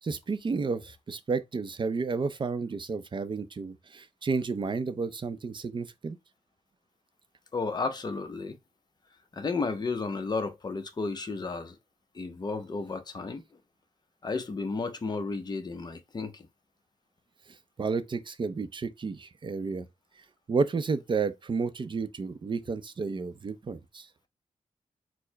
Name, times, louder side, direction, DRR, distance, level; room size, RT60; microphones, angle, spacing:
voice 1, 0.0-6.2 17.5-19.9 20.5-24.1, right 4 dB, 40° right, 0.5 m, -31 dB
voice 2, 7.5-8.6 9.3-11.8 12.1-13.4 14.2-16.5, left 4 dB, 35° left, 0.7 m, -33 dB
4.6 x 2.1 x 4.4 m
wide cardioid pair, 100°, 13 cm